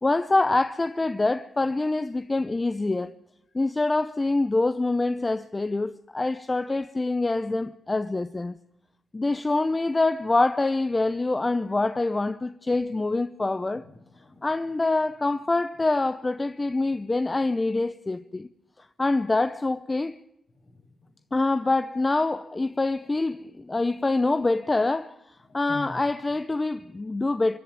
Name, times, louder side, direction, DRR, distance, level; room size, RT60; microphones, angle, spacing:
voice 1, 0.0-3.1 3.5-8.6 9.1-13.9 14.4-18.5 19.0-20.2 21.3-25.2 25.5-27.6, left 2 dB, 25° left, 0.7 m, -25 dB
voice 2, 13.7-14.5 20.6-21.1 23.0-23.4 25.4-26.0 26.3-26.4, left 3 dB, 60° left, 7.3 m, -46 dB
26.0 x 11.0 x 9.5 m
cardioid pair, 60°, 0 cm